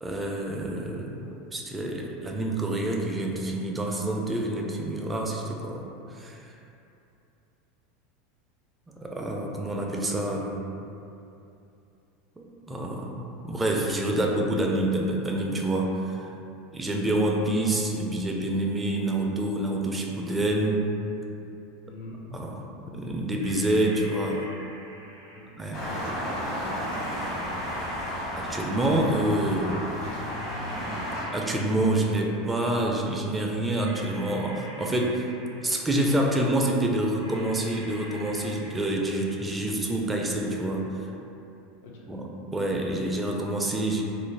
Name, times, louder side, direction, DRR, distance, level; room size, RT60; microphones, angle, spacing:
voice 1, 0.0-6.5 9.0-10.6 12.4-16.3 16.7-20.9 22.3-24.4 25.6-25.8 28.4-29.8 31.3-35.3 35.6-40.8 42.1-44.0, right 1 dB, 15° right, -1 dB, 0.3 m, -27 dB
voice 2, 21.9-22.2 25.3-27.3 41.8-42.1, left 2 dB, 65° left, -2 dB, 0.4 m, -45 dB
sound 1, 23.4-25.7 26.8-29.2 30.2-32.7 33.7-36.1 37.2-39.6 40.6-40.7, equal, 85° right, 0.4 m, -46 dB
sound 2, 25.7-31.2, equal, 50° left, 1.0 m, -32 dB
2.4 x 2.0 x 3.2 m, 2.7 s
hypercardioid pair, 85°, 0 cm